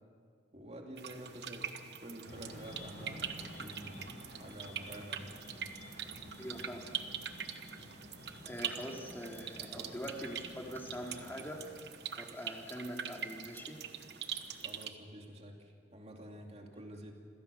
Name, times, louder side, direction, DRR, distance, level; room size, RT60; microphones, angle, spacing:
voice 1, 0.5-5.4 9.3-9.4 9.7-10.1 14.6-17.1, right 1 dB, 35° right, 2 dB, 2.6 m, -49 dB
sound 1, 1.0-14.9, right 8 dB, 65° right, 1.2 m, -44 dB
sound 2, 2.2-11.8, left 1 dB, 85° left, 4.3 m, -52 dB
voice 2, 6.4-6.9 8.5-11.6 12.2-13.8, equal, 10° left, 0 dB, 2.8 m, -43 dB
27.5 x 16.5 x 7.0 m, 2.1 s
head